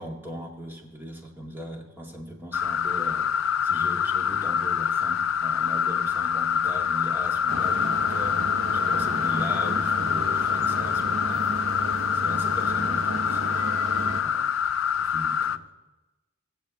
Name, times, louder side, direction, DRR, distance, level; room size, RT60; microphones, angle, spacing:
voice 1, 0.0-3.3 3.6-11.7 12.1-13.7 14.1-14.5 15.0-15.6, equal, 10° right, 0 dB, 2.1 m, -39 dB
sound 1, 2.5-15.6, left 8 dB, 70° left, 0.4 m, -25 dB
sound 2, 7.5-14.2, right 3 dB, 85° right, 0.8 m, -34 dB
17.5 x 7.9 x 8.4 m, 1.1 s
head